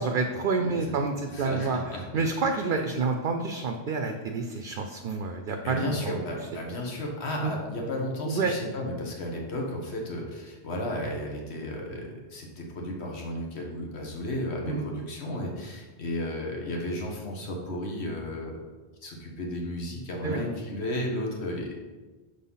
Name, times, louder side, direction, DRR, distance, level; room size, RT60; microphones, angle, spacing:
voice 1, 0.0-1.8 2.1-6.2 7.4-7.6 8.3-8.5 14.6-14.9 20.2-20.4, right 4 dB, 60° right, 4 dB, 0.7 m, -28 dB
voice 2, 0.6-1.0 1.3-2.0 5.6-18.7 19.0-21.7, left 1 dB, 80° left, 0 dB, 1.5 m, -33 dB
6.6 x 4.0 x 5.5 m, 1.3 s
omnidirectional pair, 1.1 m